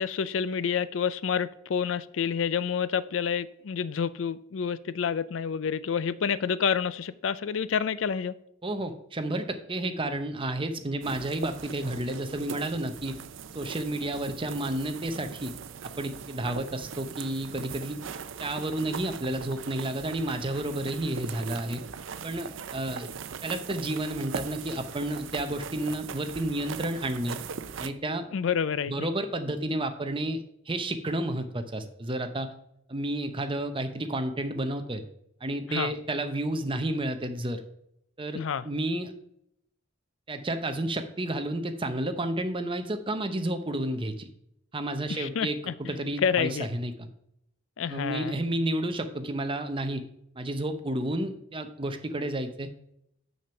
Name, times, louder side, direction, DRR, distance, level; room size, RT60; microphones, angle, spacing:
voice 1, 0.0-8.4 28.3-29.1 35.7-35.9 38.3-38.7 45.1-45.7 46.2-46.7 47.8-48.4, left 7 dB, 90° left, 0.4 m, -28 dB
voice 2, 8.6-13.2 13.5-15.5 16.0-18.0 18.4-21.8 22.2-23.1 23.4-27.4 27.8-28.3 28.9-32.5 32.9-35.0 35.4-37.6 38.2-39.1 40.3-44.3 44.7-45.6 45.9-46.9 47.9-50.0 50.3-52.7, right 1 dB, 25° right, 0.8 m, -31 dB
sound 1, 11.0-27.9, right 6 dB, 85° right, 0.5 m, -40 dB
7.0 x 6.4 x 5.7 m
head